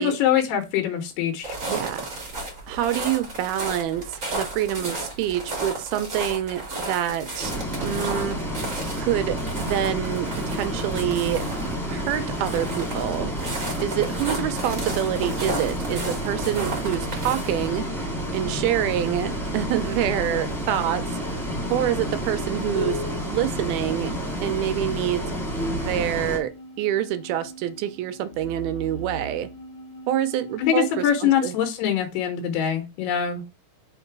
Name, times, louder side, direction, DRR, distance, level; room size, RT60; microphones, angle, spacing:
voice 1, 0.0-1.6 30.6-33.4, left 9 dB, 80° left, 3.0 m, -23 dB
sound 1, 1.4-17.7, right 2 dB, 25° right, 1.8 m, -34 dB
voice 2, 1.7-2.1 2.7-7.5 7.8-8.4 9.0-11.4 11.9-13.4 13.8-21.4 21.7-23.0 23.3-24.1 24.4-25.3 25.7-26.5 26.8-29.5 30.1-31.5, right 11 dB, 80° right, 2.4 m, -26 dB
Bus, 7.4-26.4, equal, ahead, 1.4 m, -30 dB
sound 2, 19.9-31.1, equal, 30° left, 1.3 m, -39 dB
5.8 x 4.1 x 4.6 m
omnidirectional pair, 4.7 m